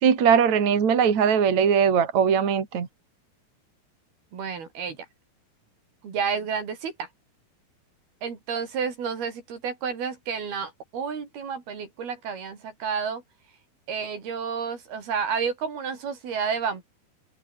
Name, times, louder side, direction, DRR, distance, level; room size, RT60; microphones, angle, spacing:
voice 1, 0.0-2.9, right 7 dB, 45° right, 4.0 m, -20 dB
voice 2, 4.3-5.1 6.0-7.1 8.2-13.2 13.9-16.8, right 6 dB, 70° right, 6.0 m, -30 dB
omnidirectional pair, 4.7 m